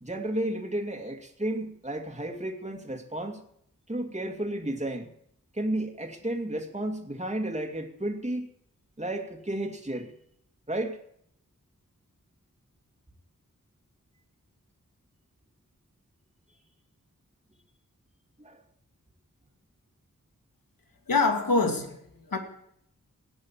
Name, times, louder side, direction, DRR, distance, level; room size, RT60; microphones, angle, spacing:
voice 1, 0.0-3.4 3.9-5.1 5.5-8.5 9.0-10.2 10.7-11.0 18.4-18.6, right 1 dB, 20° right, 3 dB, 2.5 m, -32 dB
voice 2, 21.1-22.4, left 3 dB, 85° left, 5 dB, 2.4 m, -25 dB
17.0 x 9.6 x 7.4 m, 0.71 s
wide cardioid pair, 55°, 33 cm